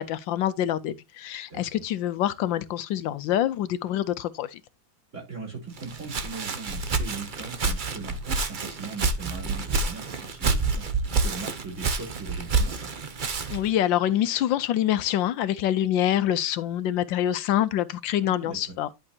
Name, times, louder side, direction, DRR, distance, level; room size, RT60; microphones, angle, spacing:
voice 1, 0.0-4.6 13.5-18.9, left 11 dB, 80° left, 1.3 m, -26 dB
voice 2, 5.1-12.9 18.2-18.7, right 4 dB, 35° right, 4.8 m, -39 dB
Walk footsteps, 5.8-13.7, right 4 dB, 55° right, 0.5 m, -28 dB
11.0 x 6.4 x 2.8 m
omnidirectional pair, 2.1 m